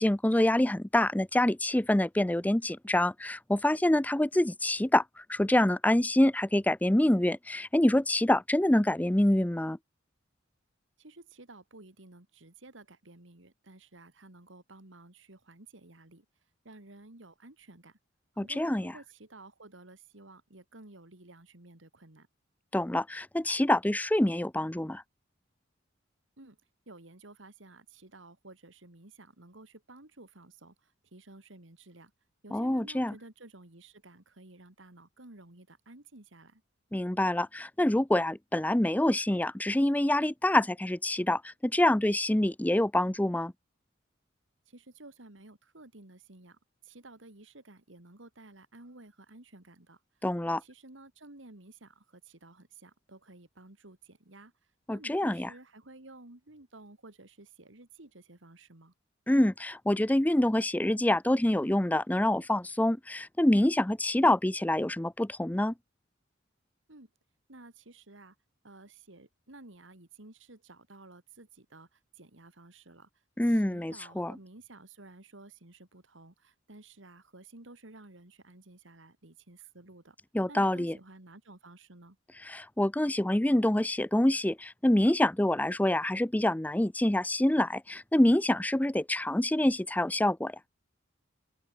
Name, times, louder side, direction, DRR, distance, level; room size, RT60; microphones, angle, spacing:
voice 1, 0.0-9.8 18.4-18.9 22.7-25.0 32.5-33.1 36.9-43.5 50.2-50.6 54.9-55.5 59.3-65.7 73.4-74.4 80.3-81.0 82.4-90.6, left 1 dB, 10° left, 0.5 m, -26 dB
voice 2, 11.0-16.2 16.6-18.0 18.3-22.3 26.4-26.6 26.9-32.1 32.4-36.6 44.7-50.0 50.6-54.5 54.9-58.9 66.9-67.1 67.5-68.3 68.6-73.1 73.4-80.2 80.5-82.2, right 2 dB, 75° right, 2.7 m, -53 dB
open air
head